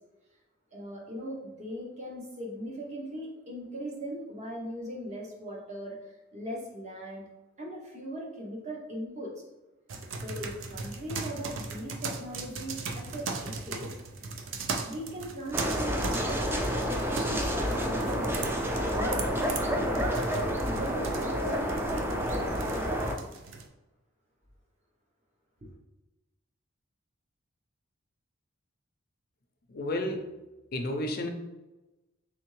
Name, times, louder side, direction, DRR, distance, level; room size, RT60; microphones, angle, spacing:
voice 1, 0.7-7.2 7.6-9.3 10.2-13.9 14.9-18.4 18.7-22.9 25.6-25.7, right 1 dB, 35° right, -1 dB, 0.8 m, -39 dB
sound 1, 9.9-23.7, right 4 dB, 70° right, 0.5 m, -39 dB
sound 2, 15.5-23.1, equal, 10° right, 0.4 m, -29 dB
voice 2, 29.7-30.4 30.7-31.3, left 1 dB, 50° left, 4 dB, 0.5 m, -32 dB
3.5 x 3.4 x 3.1 m, 1.0 s
head